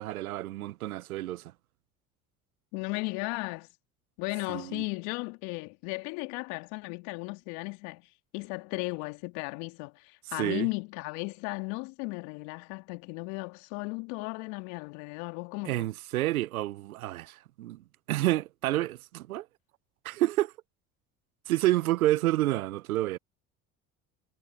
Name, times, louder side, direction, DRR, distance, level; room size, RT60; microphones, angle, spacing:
voice 1, 0.0-1.5 4.5-4.8 10.3-10.7 15.6-19.5 20.0-20.5 21.5-23.2, right 16 dB, 85° right, 0.9 m, -29 dB
voice 2, 2.7-3.7 4.2-15.9, left 29 dB, 70° left, 2.6 m, -36 dB
hypercardioid pair, 60°, 42 cm